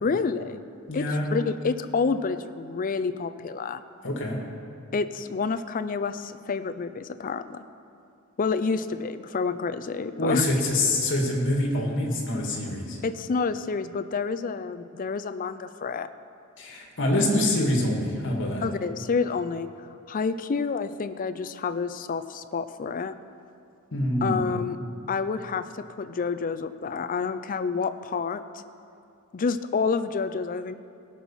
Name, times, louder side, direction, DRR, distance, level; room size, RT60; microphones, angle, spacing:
voice 1, 0.0-0.6 0.9-1.1 1.3-3.8 4.9-7.6 8.4-10.5 13.0-16.1 18.6-23.1 24.2-24.8 25.1-28.4 29.3-30.7, left 5 dB, 40° left, 11 dB, 0.4 m, -28 dB
voice 2, 0.9-1.2 4.0-4.4 10.2-13.0 16.6-18.6 23.9-24.4, left 1 dB, 60° left, 0 dB, 1.9 m, -25 dB
17.5 x 6.2 x 5.6 m, 2.6 s
head